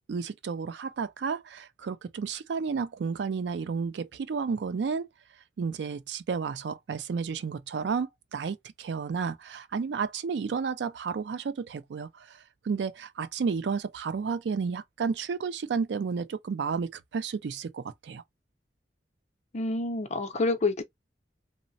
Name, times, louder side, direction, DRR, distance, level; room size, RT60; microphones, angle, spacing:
voice 1, 0.1-5.1 5.6-18.2, right 5 dB, 70° right, 0.4 m, -32 dB
voice 2, 19.5-20.8, left 2 dB, 40° left, 0.6 m, -28 dB
3.1 x 2.1 x 2.5 m
head